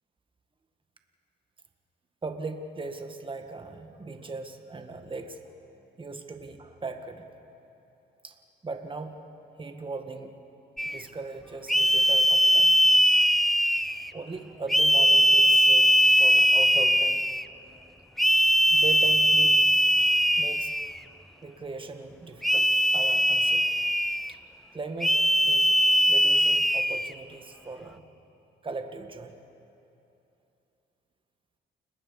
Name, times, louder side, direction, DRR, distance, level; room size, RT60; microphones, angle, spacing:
voice 1, 2.2-5.4 6.0-7.3 8.2-8.4 8.6-9.2 9.6-10.4 10.8-12.8 13.2-13.3 14.1-15.9 16.2-17.3 17.5-17.9 18.7-19.6 20.3-20.7 21.4-23.9 24.3-24.4 24.7-25.2 25.5-25.7 26.1-28.1 28.6-29.4, right 3 dB, 25° right, 5 dB, 1.8 m, -38 dB
sound 1, 10.8-11.0 11.7-14.1 14.7-17.4 18.2-21.0 22.4-24.3 25.0-27.1, equal, ahead, 0.4 m, -21 dB
29.5 x 20.0 x 5.4 m, 2.9 s
cardioid pair, 90°, 20 cm